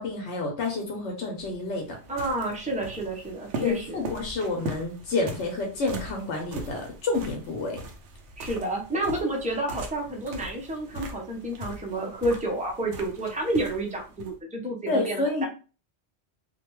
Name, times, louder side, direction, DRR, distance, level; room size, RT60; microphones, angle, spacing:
voice 1, 0.0-2.0 3.6-7.8 14.9-15.5, left 3 dB, 85° left, 2 dB, 1.0 m, -29 dB
sound 1, 1.4-14.4, right 2 dB, 85° right, 0.9 m, -40 dB
voice 2, 2.1-4.0 8.4-15.5, right 1 dB, 10° right, 0 dB, 0.5 m, -30 dB
2.6 x 2.2 x 3.0 m, 0.35 s
omnidirectional pair, 1.2 m